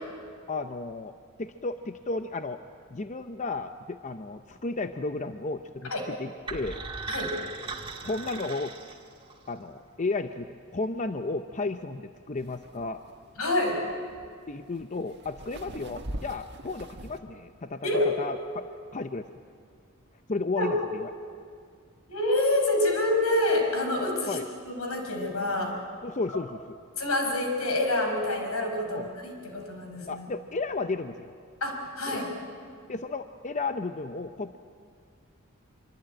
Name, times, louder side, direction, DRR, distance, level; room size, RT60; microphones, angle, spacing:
voice 1, 0.5-2.6 2.9-6.8 8.0-8.7 9.5-13.0 14.5-17.9 18.2-19.3 20.3-21.1 24.3-24.5 26.0-26.8 28.9-29.1 30.1-31.3 32.1-32.2 32.9-34.6, left 3 dB, 35° left, 8 dB, 0.7 m, -33 dB
sound 1, 6.5-9.5, right 4 dB, 25° right, 1.8 m, -38 dB
sound 2, 12.4-17.2, right 1 dB, 50° right, 1.5 m, -42 dB
voice 2, 13.4-13.8 17.8-18.1 20.5-20.7 22.1-24.4 24.6-25.7 27.0-30.2 31.6-32.3, left 1 dB, 80° left, 3 dB, 5.1 m, -27 dB
24.5 x 24.0 x 8.9 m, 2.2 s
head